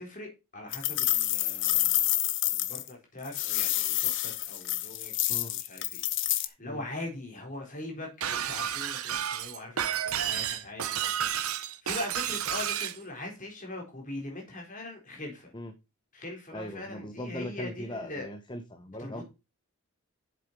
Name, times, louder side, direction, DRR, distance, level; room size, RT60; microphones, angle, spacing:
voice 1, 0.0-6.0 6.3-15.5 16.1-18.3 19.0-19.2, left 2 dB, 35° left, 1 dB, 4.0 m, -41 dB
sound 1, 0.7-2.9 3.2-6.5, left 14 dB, 55° left, 0.8 m, -28 dB
Shatter, 8.2-13.0, right 9 dB, 75° right, 0.8 m, -31 dB
voice 2, 16.5-19.2, left 1 dB, 20° left, 7 dB, 0.9 m, -39 dB
7.7 x 7.3 x 5.2 m, 0.27 s
head